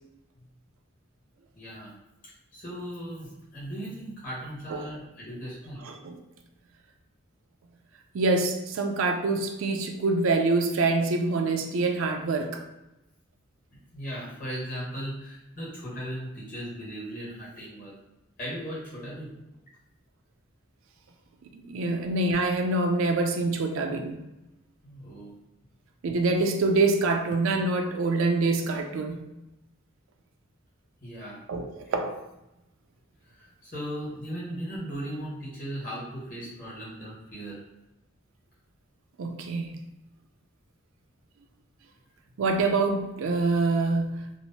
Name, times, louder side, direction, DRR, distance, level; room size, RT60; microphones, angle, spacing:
voice 1, 1.5-1.9 2.5-5.8 13.9-17.9 18.4-19.3 21.9-22.1 24.8-25.3 31.0-31.4 33.3-37.6, equal, 40° left, -7 dB, 1.2 m, -37 dB
voice 2, 5.8-6.2 8.1-12.6 21.5-24.2 26.0-29.2 31.5-32.2 39.2-39.7 42.4-44.2, right 3 dB, 75° right, 4 dB, 0.4 m, -25 dB
2.9 x 2.0 x 2.7 m, 0.94 s
head